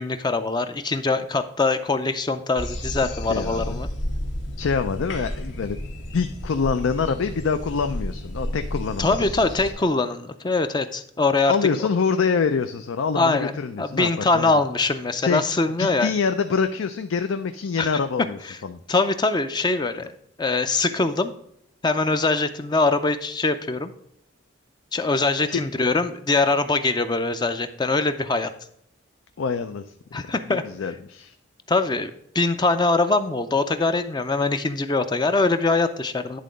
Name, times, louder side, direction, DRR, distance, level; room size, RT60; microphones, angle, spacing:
voice 1, 0.0-3.9 9.0-11.9 13.1-13.5 13.8-16.1 17.8-18.0 18.5-18.6 18.9-20.0 20.4-21.3 21.8-23.9 24.9-28.5 30.1-30.6 31.7-36.4, left 3 dB, 20° left, 9 dB, 0.4 m, -23 dB
sound 1, 2.6-9.7, left 1 dB, 60° left, 1.2 m, -32 dB
voice 2, 3.3-3.8 4.6-5.8 6.1-9.4 11.5-14.5 15.2-15.4 15.8-18.8 25.5-25.6 29.4-29.8 30.5-31.3, left 5 dB, 80° left, 8 dB, 0.4 m, -25 dB
10.5 x 3.8 x 5.0 m, 0.73 s
head